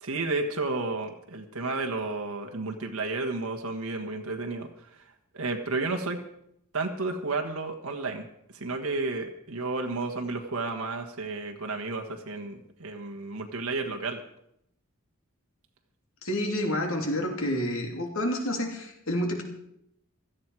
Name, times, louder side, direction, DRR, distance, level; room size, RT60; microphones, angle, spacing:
voice 1, 0.0-5.0 5.3-6.2 6.7-8.3 8.5-14.2, right 3 dB, 80° right, 3 dB, 1.6 m, -32 dB
voice 2, 16.2-19.4, left 1 dB, 70° left, 2 dB, 3.0 m, -29 dB
17.0 x 13.5 x 4.8 m, 0.76 s
head